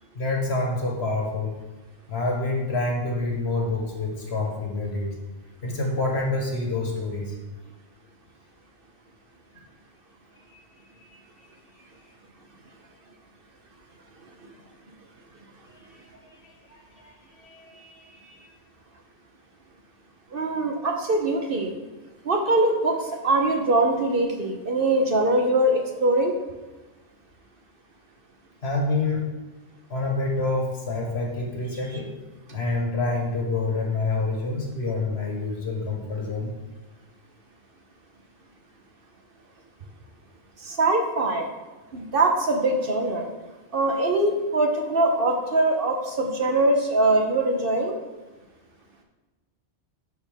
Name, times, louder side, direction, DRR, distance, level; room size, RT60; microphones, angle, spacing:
voice 1, 0.1-1.5 2.1-5.1 5.6-7.3 10.5-10.6 11.1-11.5 15.9-16.0 16.4-18.5 28.6-29.2 29.9-32.1 32.5-36.5, left 2 dB, 65° left, -1 dB, 1.6 m, -27 dB
voice 2, 20.3-21.7 22.2-26.3 40.6-41.5 41.9-43.3 43.7-47.9, right 2 dB, 55° right, 3 dB, 1.0 m, -22 dB
11.5 x 4.5 x 3.5 m, 1.2 s
omnidirectional pair, 1.2 m